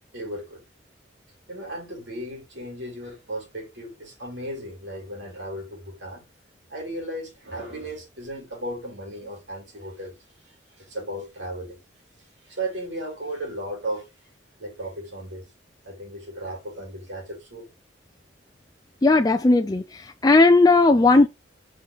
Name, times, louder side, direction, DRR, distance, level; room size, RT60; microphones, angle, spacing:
voice 1, 0.1-0.6 1.5-6.3 6.7-10.2 10.8-11.8 12.4-14.1 14.6-15.5 15.8-17.7, right 1 dB, 70° right, 3.9 m, -35 dB
voice 2, 19.0-21.3, left 3 dB, 20° left, 0.4 m, -17 dB
7.3 x 5.6 x 3.0 m
head